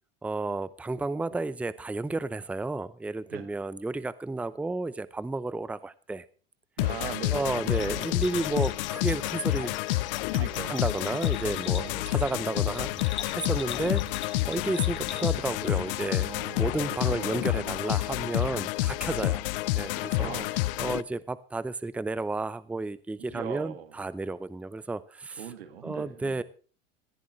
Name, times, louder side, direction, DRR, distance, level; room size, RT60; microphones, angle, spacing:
voice 1, 0.2-6.2 7.3-9.8 10.7-16.3 16.6-19.4 19.7-25.5 25.8-26.4, right 3 dB, 5° right, 17 dB, 0.6 m, -32 dB
sound 1, 6.8-21.0, left 19 dB, 65° left, 0.6 m, -29 dB
voice 2, 6.8-8.1 10.3-10.8 11.8-12.1 16.2-16.7 17.0-17.8 20.0-20.6 23.2-23.9 25.4-26.4, right 9 dB, 80° right, 9 dB, 1.8 m, -40 dB
Bell, 7.7-15.6, left 9 dB, 40° left, 1.9 m, -43 dB
sound 2, 12.9-18.4, right 6 dB, 25° right, 1.9 m, -54 dB
19.5 x 14.0 x 3.2 m, 0.39 s
hypercardioid pair, 90°, 30 cm